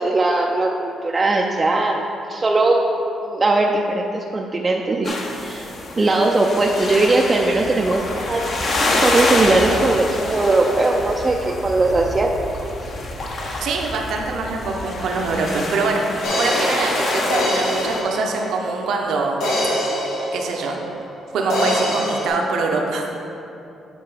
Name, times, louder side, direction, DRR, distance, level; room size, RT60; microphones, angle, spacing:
voice 1, 0.0-2.8 3.2-5.7 6.0-8.4 9.0-12.3, right 2 dB, 30° right, 0 dB, 0.4 m, -19 dB
sound 1, 5.0-18.0, left 2 dB, 55° left, 1.0 m, -26 dB
voice 2, 13.6-19.4 20.3-20.8 21.3-23.3, right 3 dB, 75° right, 1 dB, 0.8 m, -24 dB
sound 2, 16.2-18.8 19.4-21.1 21.5-22.3, equal, 90° left, 1.3 m, -24 dB
8.3 x 3.8 x 4.9 m, 2.8 s
cardioid pair, 90°, 0 cm